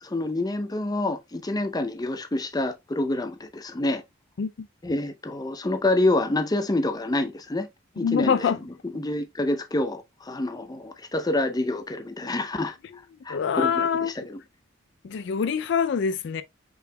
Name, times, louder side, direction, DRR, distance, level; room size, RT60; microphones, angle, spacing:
voice 1, 0.0-4.0 4.8-7.7 8.0-8.5 8.9-12.8 13.2-13.9 14.3-14.4, left 2 dB, 20° left, 0.6 m, -27 dB
voice 2, 8.0-8.6 13.3-14.3 15.0-16.4, left 6 dB, 65° left, 0.4 m, -25 dB
5.5 x 4.0 x 2.2 m
head